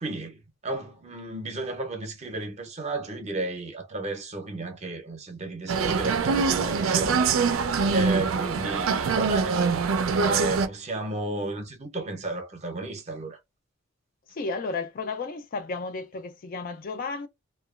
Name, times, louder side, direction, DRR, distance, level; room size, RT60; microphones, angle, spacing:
voice 1, 0.0-7.2 7.6-9.6 10.2-13.4, right 2 dB, 35° right, 0.6 m, -33 dB
sound 1, 5.7-10.7, right 5 dB, 75° right, 0.4 m, -24 dB
voice 2, 14.3-17.3, left 3 dB, 45° left, 0.3 m, -33 dB
2.8 x 2.2 x 2.3 m
head